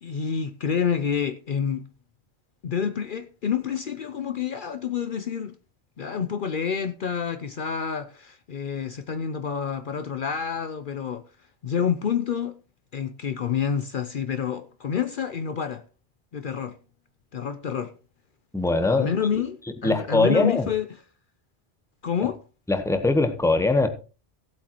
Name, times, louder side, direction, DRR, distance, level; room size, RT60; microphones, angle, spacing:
voice 1, 0.0-1.9 2.6-5.6 6.0-11.2 11.6-12.6 12.9-15.8 16.3-16.8 17.3-17.9 18.8-20.9 22.0-22.4, left 7 dB, 55° left, 0.8 m, -28 dB
voice 2, 18.5-19.1 19.8-20.7 22.7-23.9, left 2 dB, 5° left, 1.0 m, -21 dB
17.0 x 8.2 x 3.0 m
omnidirectional pair, 1.1 m